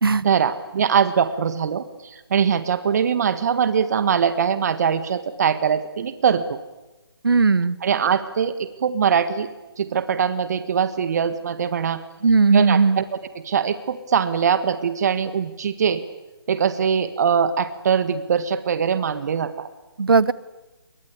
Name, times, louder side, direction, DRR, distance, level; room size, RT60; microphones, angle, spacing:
voice 1, 0.2-6.4 7.8-9.5 9.8-12.0 12.5-13.0 13.4-16.0 16.5-19.7, right 7 dB, 45° right, 12 dB, 1.8 m, -22 dB
voice 2, 7.2-7.8 12.2-13.0 20.0-20.3, right 4 dB, 65° right, 20 dB, 1.2 m, -17 dB
28.0 x 23.5 x 8.5 m, 1.1 s
figure-of-eight pair, 145°, 13 cm